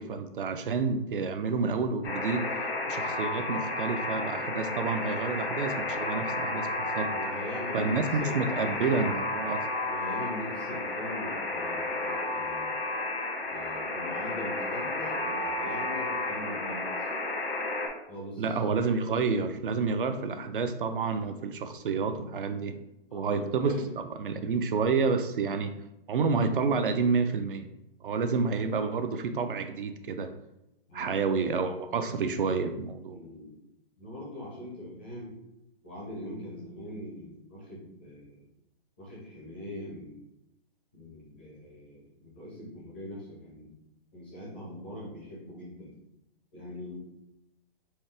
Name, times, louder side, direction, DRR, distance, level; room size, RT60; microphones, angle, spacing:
voice 1, 0.0-2.5 2.9-7.1 7.7-9.6 18.4-22.8 23.1-23.9 24.2-25.7 26.1-27.7 28.0-30.3 30.9-33.2, right 4 dB, 60° right, 9 dB, 0.5 m, -29 dB
Alarm, 2.0-17.9, left 2 dB, 90° left, 1.5 m, -32 dB
voice 2, 7.1-9.1 9.8-12.7 13.5-17.1 18.1-18.6 23.1-24.1 30.9-31.6 33.1-33.6 34.0-35.4 35.8-38.5 39.0-40.2 40.9-43.7 44.1-46.0 46.5-47.0, left 1 dB, 10° left, -6 dB, 0.5 m, -42 dB
4.6 x 3.2 x 3.3 m, 0.88 s
hypercardioid pair, 170°, 30 cm